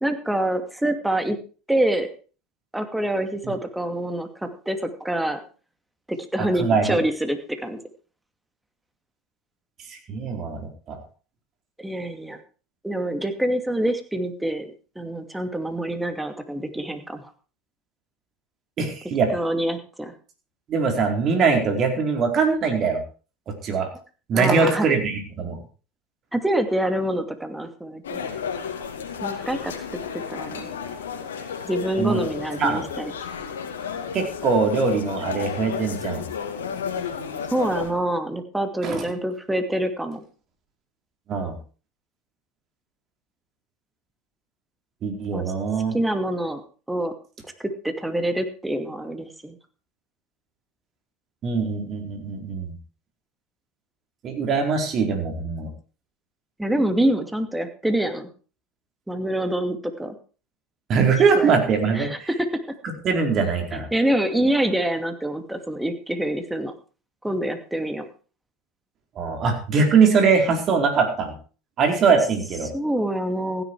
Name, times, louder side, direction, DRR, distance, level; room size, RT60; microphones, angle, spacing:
voice 1, 0.0-1.4 1.7-2.1 2.7-5.4 6.1-7.8 11.8-12.4 12.8-14.7 15.0-17.2 19.3-20.1 24.3-24.9 26.3-28.3 29.2-29.7 30.1-30.7 31.6-33.1 37.5-40.2 45.3-45.4 45.9-46.6 46.9-47.1 47.6-49.6 56.6-58.3 59.1-60.2 61.0-61.1 61.3-61.5 61.9-62.5 63.7-66.7 67.2-68.0 72.7-73.6, right 1 dB, 5° right, 7 dB, 2.5 m, -26 dB
voice 2, 6.4-7.0 9.9-11.0 18.8-19.3 20.7-23.0 23.5-23.9 24.3-25.6 32.0-32.2 32.6-32.8 34.1-36.3 38.8-39.1 41.3-41.5 45.0-46.0 51.4-52.7 54.2-55.7 60.9-62.3 63.0-63.9 69.2-71.4 71.8-72.7, right 5 dB, 45° right, 4 dB, 4.5 m, -22 dB
sound 1, 28.0-37.9, left 7 dB, 85° left, 2.3 m, -32 dB
15.5 x 10.5 x 4.8 m, 0.38 s
hypercardioid pair, 85°, 0 cm